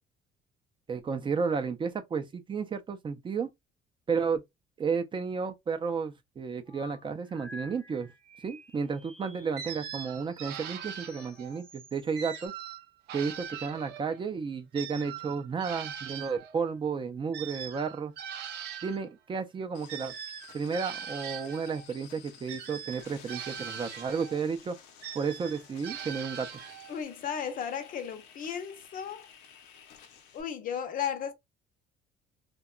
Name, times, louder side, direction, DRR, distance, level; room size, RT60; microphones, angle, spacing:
voice 1, 0.9-3.5 4.1-4.4 4.8-8.1 8.4-12.5 13.1-18.1 18.8-20.1 20.5-24.8 25.1-26.5, right 5 dB, 30° right, 0.4 m, -32 dB
sound 1, 6.7-12.5, left 1 dB, 5° left, 0.7 m, -52 dB
sound 2, 9.6-11.6 12.1-14.2 14.7-19.1 19.9-21.9 22.5-24.5 25.0-27.0, right 9 dB, 80° right, 0.5 m, -41 dB
sound 3, 19.7-30.4, left 7 dB, 90° left, 0.7 m, -53 dB
voice 2, 26.9-29.3 30.3-31.3, left 8 dB, 55° left, 0.6 m, -35 dB
2.8 x 2.2 x 2.3 m
cardioid pair, 110°, 17 cm